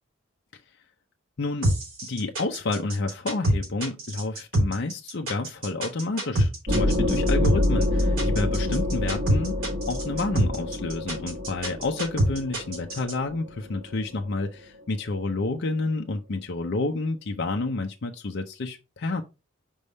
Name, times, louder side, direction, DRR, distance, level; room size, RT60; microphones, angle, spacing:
voice 1, 1.4-1.7 2.0-9.5 9.9-19.2, left 3 dB, 55° left, 0.6 m, -29 dB
sound 1, 1.6-13.1, equal, 80° right, 3.8 m, -25 dB
sound 2, 6.7-14.0, left 1 dB, 45° right, 1.4 m, -27 dB
5.4 x 3.5 x 5.2 m
head